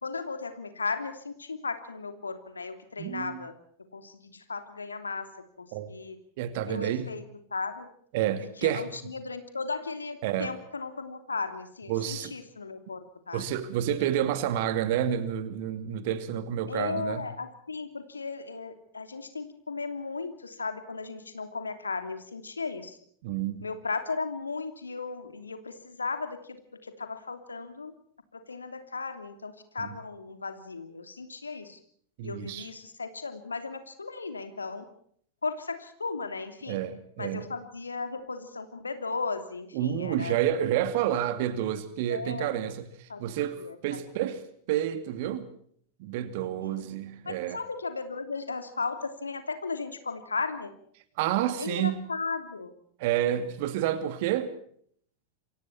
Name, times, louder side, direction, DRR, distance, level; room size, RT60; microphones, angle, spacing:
voice 1, 0.0-3.5 3.9-5.3 5.6-6.2 6.7-7.2 7.5-7.9 8.4-13.4 16.7-23.0 23.6-27.9 28.3-31.8 32.2-34.8 35.4-36.8 37.2-40.4 42.1-42.6 43.1-43.2 43.5-44.0 46.4-46.8 47.3-50.7 51.6-52.7, left 4 dB, 75° left, 2.9 m, -36 dB
voice 2, 3.0-3.4 5.7-5.9 6.4-7.1 8.1-8.9 10.2-10.5 11.9-12.4 13.3-17.3 23.2-23.7 29.8-29.9 32.2-32.7 36.7-37.6 39.7-44.4 44.7-45.5 46.0-47.6 51.2-52.1 53.0-54.5, right 11 dB, 50° right, 2.4 m, -29 dB
28.0 x 24.0 x 4.3 m
figure-of-eight pair, 90°, 0 cm